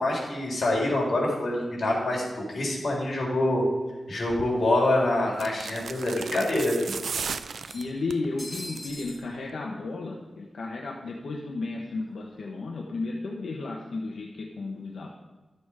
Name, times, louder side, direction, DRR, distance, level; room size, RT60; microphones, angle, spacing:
voice 1, 0.0-3.6 4.1-6.9, left 1 dB, 50° left, -3 dB, 3.6 m, -26 dB
sound 1, 4.1-4.2 4.5-4.6 5.7-5.8 6.1-6.2 7.5-9.2, left 1 dB, 5° left, 1.2 m, -42 dB
bag of chips, 4.3-4.5 5.3-8.2 8.6-9.0 9.2-9.3, right 6 dB, 75° right, 0.4 m, -35 dB
voice 2, 7.7-15.1, left 3 dB, 75° left, -1 dB, 1.1 m, -33 dB
12.5 x 7.0 x 4.9 m, 1.2 s
wide cardioid pair, 170°, 0 cm